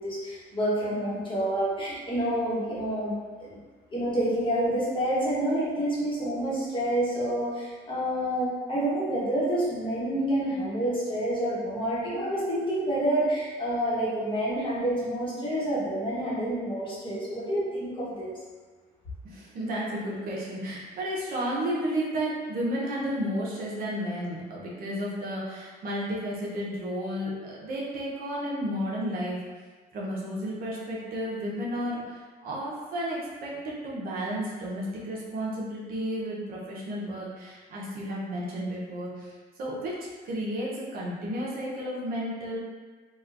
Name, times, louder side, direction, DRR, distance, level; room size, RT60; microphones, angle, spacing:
voice 1, 0.0-3.6 3.9-18.3, right 1 dB, 30° left, -7 dB, 1.0 m, -28 dB
voice 2, 19.2-29.4 29.9-39.3 39.6-39.9 40.2-42.6, equal, 60° right, -5 dB, 0.7 m, -32 dB
3.0 x 2.2 x 2.5 m, 1.4 s
cardioid pair, 110°, 17 cm